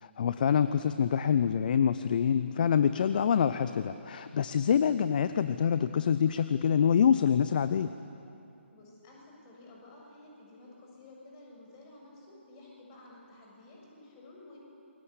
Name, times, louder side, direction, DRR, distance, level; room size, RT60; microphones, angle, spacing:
voice 1, 0.0-7.9, left 8 dB, 45° left, 12 dB, 0.7 m, -26 dB
voice 2, 8.7-14.6, left 2 dB, 25° left, -2 dB, 7.1 m, -53 dB
27.5 x 22.0 x 8.4 m, 2.8 s
figure-of-eight pair, 140°, 7 cm